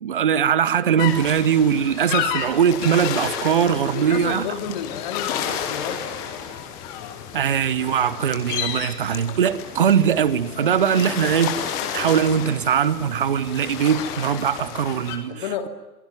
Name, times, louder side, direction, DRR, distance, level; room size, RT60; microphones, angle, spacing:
voice 1, 0.0-4.5 7.3-15.7, right 8 dB, 30° right, 1.1 m, -21 dB
sound 1, 1.0-15.2, left 9 dB, 5° left, 0.9 m, -31 dB
voice 2, 3.8-6.6 6.9-7.5 7.9-8.0 15.3-15.7, left 8 dB, 25° left, 2.4 m, -33 dB
27.0 x 21.5 x 9.2 m
figure-of-eight pair, 140°, 49 cm